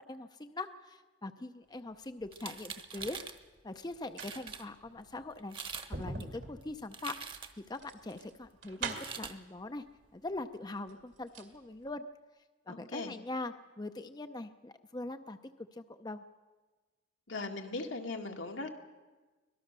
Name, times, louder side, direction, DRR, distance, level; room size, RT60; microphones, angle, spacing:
voice 1, 0.0-3.2 3.6-5.6 5.9-7.2 7.7-9.8 10.1-12.1 12.7-15.4 15.7-16.2, left 2 dB, 20° left, 8 dB, 0.6 m, -42 dB
sound 1, 2.2-3.2 3.9-9.3 10.3-10.4 10.7-11.6 11.8-11.9, right 3 dB, 70° right, 2.4 m, -44 dB
sound 2, 2.3-3.4 3.9-4.0 4.2-4.6 5.4-5.9 6.2-7.7 8.8-9.4, right 6 dB, 25° right, 1.1 m, -44 dB
voice 2, 12.7-13.1 17.3-18.7, left 3 dB, 85° left, 2 dB, 2.2 m, -39 dB
24.5 x 18.0 x 6.7 m, 1.3 s
head